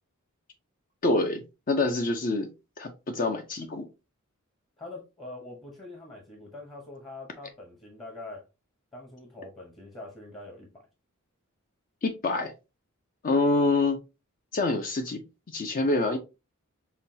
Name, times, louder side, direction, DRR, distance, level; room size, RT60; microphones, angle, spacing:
voice 1, 1.0-2.5 2.8-3.9 12.0-12.5 13.2-14.0 14.5-16.2, left 2 dB, 40° left, 0.5 m, -26 dB
voice 2, 4.8-8.4 8.9-10.8, left 2 dB, 20° left, 0.9 m, -44 dB
5.7 x 2.2 x 2.7 m
head